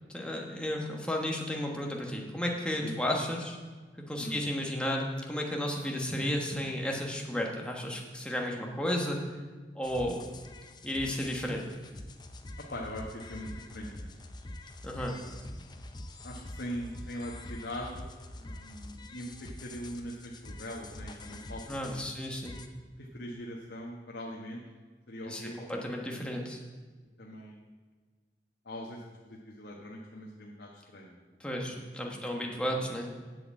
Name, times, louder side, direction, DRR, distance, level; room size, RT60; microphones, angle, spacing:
voice 1, 0.1-3.6 4.1-9.2 9.7-10.2 10.8-11.6 14.8-15.1 21.7-22.6 25.2-25.4 25.7-26.6 31.4-33.1, equal, 5° left, 0 dB, 1.3 m, -33 dB
sound 1, 9.8-22.7, left 1 dB, 25° left, 0.6 m, -45 dB
voice 2, 12.7-14.1 15.0-15.7 16.2-18.1 18.4-22.0 23.0-24.6 25.1-26.3 27.2-27.6 28.6-31.8 32.1-32.2 32.6-33.0, equal, 80° left, -2 dB, 1.3 m, -42 dB
8.0 x 7.7 x 7.6 m, 1.4 s
head